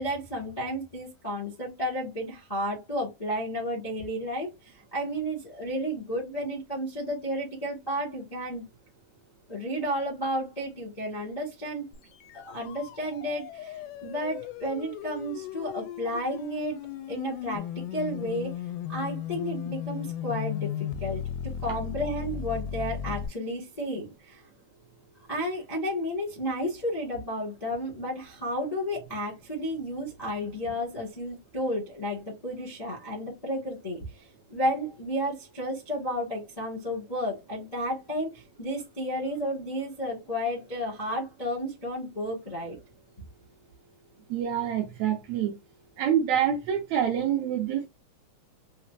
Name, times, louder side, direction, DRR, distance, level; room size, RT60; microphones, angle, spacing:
voice 1, 0.0-8.6 9.5-11.8 12.3-16.8 17.1-18.5 18.9-21.2 21.6-24.4 25.3-42.8, equal, 35° left, 0.6 m, -32 dB
sound 1, 11.9-23.3, left 9 dB, 85° left, 2.0 m, -36 dB
voice 2, 44.3-45.5 46.0-47.9, right 9 dB, 75° right, 1.7 m, -26 dB
5.7 x 2.0 x 2.5 m
omnidirectional pair, 3.6 m